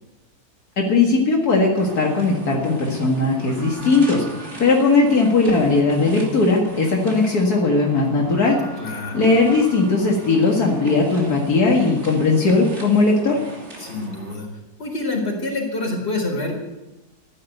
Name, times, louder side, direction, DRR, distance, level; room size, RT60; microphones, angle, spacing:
voice 1, 0.8-8.6 8.9-13.4, left 3 dB, 80° left, -1 dB, 2.4 m, -18 dB
sound 1, 1.8-14.3, right 2 dB, 45° right, 3.1 m, -38 dB
voice 2, 8.8-9.2 13.8-14.5 14.8-16.5, left 2 dB, 40° left, 1 dB, 4.5 m, -26 dB
14.0 x 10.5 x 8.0 m, 1.0 s
omnidirectional pair, 1.6 m